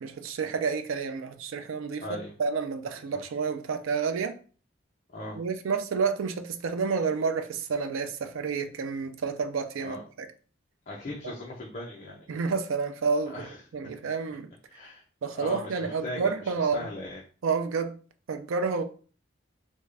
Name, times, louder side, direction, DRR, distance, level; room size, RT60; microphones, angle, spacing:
voice 1, 0.0-2.0 2.4-4.4 5.4-10.3 12.3-14.5 15.2-16.9 17.4-18.0 18.3-18.8, right 5 dB, 85° right, 0.4 m, -29 dB
voice 2, 2.0-2.3 3.1-3.2 5.1-5.4 9.8-10.0 10.9-12.2 13.3-13.6 14.7-15.0 15.3-17.2, left 1 dB, 35° left, 0.5 m, -39 dB
3.6 x 2.2 x 3.2 m
head